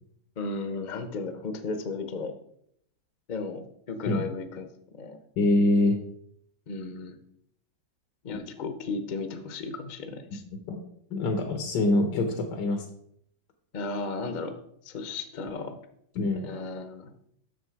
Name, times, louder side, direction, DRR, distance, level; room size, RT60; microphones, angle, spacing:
voice 1, 0.4-2.3 3.3-4.7 4.9-5.2 6.7-7.2 8.2-10.4 13.7-14.5 14.8-15.8 16.4-17.1, left 3 dB, 40° left, 8 dB, 0.7 m, -35 dB
voice 2, 5.4-6.0 10.7-10.8 11.1-12.8 16.2-16.5, left 2 dB, 80° left, 4 dB, 1.6 m, -24 dB
7.6 x 6.5 x 4.6 m, 0.71 s
omnidirectional pair, 1.9 m